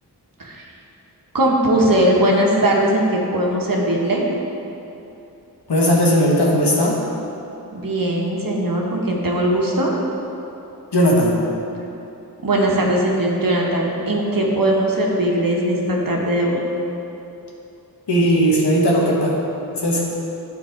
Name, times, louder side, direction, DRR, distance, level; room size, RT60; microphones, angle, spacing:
voice 1, 1.3-4.3 7.7-10.0 12.4-16.6, right 1 dB, 55° right, -2 dB, 1.3 m, -19 dB
voice 2, 5.7-7.0 10.9-11.3 18.1-19.3 19.7-20.0, equal, 90° left, -3 dB, 1.5 m, -17 dB
11.5 x 4.5 x 4.5 m, 2.9 s
wide cardioid pair, 60°, 39 cm